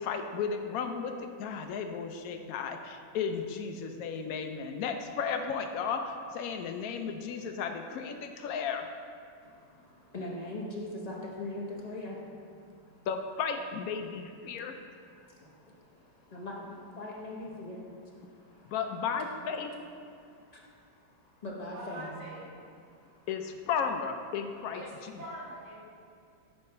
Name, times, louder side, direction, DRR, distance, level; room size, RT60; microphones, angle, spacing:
voice 1, 0.0-8.9 13.1-14.8 18.7-19.8 23.3-25.1, left 6 dB, 80° left, 5 dB, 0.8 m, -34 dB
voice 2, 9.4-13.1 14.9-18.7 20.1-22.1 22.9-23.3, left 1 dB, 30° left, -3 dB, 0.8 m, -42 dB
voice 3, 21.7-22.5 24.7-24.9 25.2-25.8, right 1 dB, 90° right, -7 dB, 2.6 m, -43 dB
9.8 x 3.4 x 5.5 m, 2.4 s
omnidirectional pair, 2.1 m